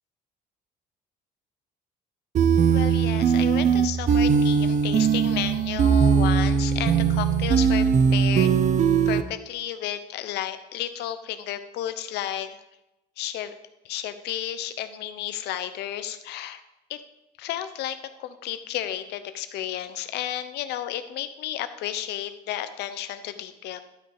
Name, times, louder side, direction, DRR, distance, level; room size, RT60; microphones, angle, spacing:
sound 1, 2.3-9.2, right 6 dB, 45° right, 0.7 m, -20 dB
voice 1, 2.7-8.5 9.1-12.6 13.2-13.5 13.8-16.6 16.9-17.0 17.4-23.8, left 11 dB, 80° left, 11 dB, 0.9 m, -32 dB
12.0 x 5.9 x 4.9 m, 0.91 s
cardioid pair, 110°, 17 cm